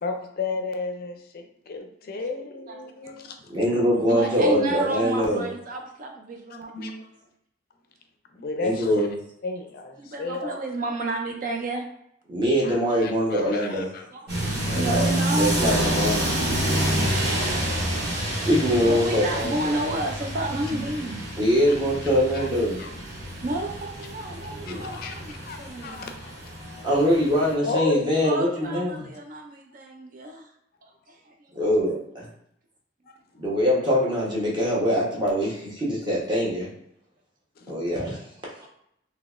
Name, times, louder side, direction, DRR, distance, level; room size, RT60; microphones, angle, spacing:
voice 1, 0.0-3.4 4.1-4.3 6.5-7.1 8.3-9.1 9.4-10.6 12.6-14.0 14.4-14.6 18.3-18.5 20.7-20.8 22.3-22.5 22.8-22.9 24.7-26.9 27.6-28.0 30.2-30.3 35.4-35.5 37.6-37.8, left 3 dB, 55° left, 5 dB, 0.4 m, -33 dB
voice 2, 2.7-3.1 3.7-3.8 4.1-7.0 10.0-11.9 14.1-15.9 18.9-21.2 23.4-26.0 28.2-30.5 30.8-31.5 34.6-34.8 35.2-35.4, right 2 dB, 45° right, 2 dB, 0.4 m, -31 dB
voice 3, 3.5-5.4 8.6-9.1 12.3-13.9 14.7-15.1 15.4-16.3 18.4-19.9 21.4-22.8 24.6-24.8 26.8-29.0 31.5-31.9 33.4-36.7 37.7-38.2, equal, 25° right, -5 dB, 1.0 m, -23 dB
sound 1, 14.3-27.5, right 1 dB, 60° right, 1.3 m, -28 dB
3.8 x 2.8 x 2.4 m, 0.75 s
head